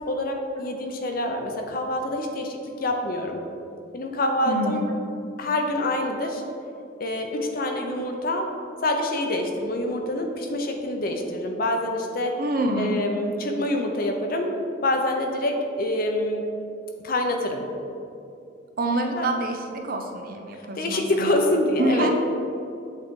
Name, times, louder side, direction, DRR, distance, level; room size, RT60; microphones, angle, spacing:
voice 1, 0.1-3.4 3.9-4.8 5.4-6.4 7.0-8.5 8.8-12.4 12.8-14.5 14.8-16.4 17.0-17.7 19.1-19.3 20.5-22.1, left 1 dB, 55° left, 3 dB, 0.6 m, -26 dB
voice 2, 4.4-4.9 12.4-13.0 18.8-21.4 21.8-22.1, right 1 dB, 50° right, 4 dB, 0.6 m, -26 dB
8.0 x 4.0 x 3.7 m, 2.6 s
head